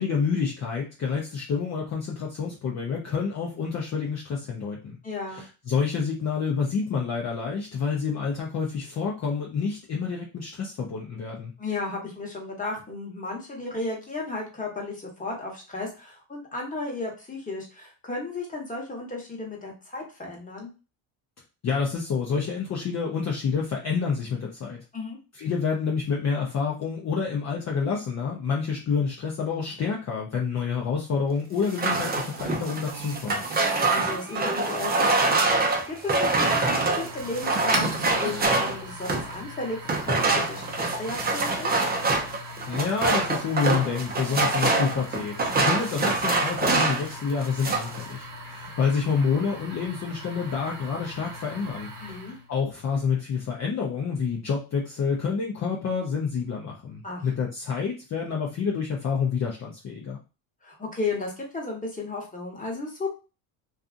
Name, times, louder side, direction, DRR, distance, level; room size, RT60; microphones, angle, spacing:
voice 1, 0.0-5.0 5.3-11.5 21.6-24.8 25.3-33.4 42.7-51.9 52.5-60.2, left 5 dB, 35° left, -2 dB, 0.6 m, -28 dB
voice 2, 5.0-5.4 11.6-20.7 24.9-25.2 33.6-41.7 52.0-52.3 57.0-57.3 60.6-63.1, left 3 dB, 15° left, -1 dB, 1.1 m, -34 dB
sound 1, 31.6-39.3 39.9-47.1 47.4-48.0, right 3 dB, 20° right, 0.5 m, -25 dB
sound 2, 32.9-52.5, right 1 dB, 40° right, 1.0 m, -40 dB
2.5 x 2.4 x 2.5 m, 0.32 s
supercardioid pair, 100°, 50 cm